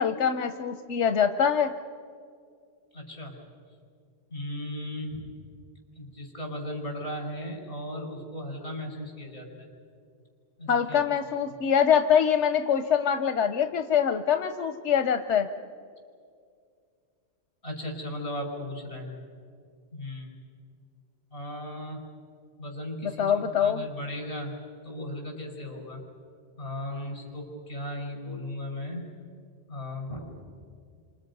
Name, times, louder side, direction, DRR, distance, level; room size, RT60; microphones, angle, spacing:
voice 1, 0.0-1.7 10.7-15.5 23.0-23.9, left 8 dB, 90° left, 7 dB, 1.1 m, -24 dB
voice 2, 2.9-3.4 4.3-5.3 6.0-9.7 10.6-11.0 17.6-19.1 19.9-20.3 21.3-22.0 22.6-23.3 23.6-24.5 24.8-26.0 26.6-29.1 29.7-30.4, left 1 dB, 50° left, 1 dB, 5.2 m, -36 dB
29.0 x 26.0 x 5.4 m, 2.2 s
omnidirectional pair, 1.2 m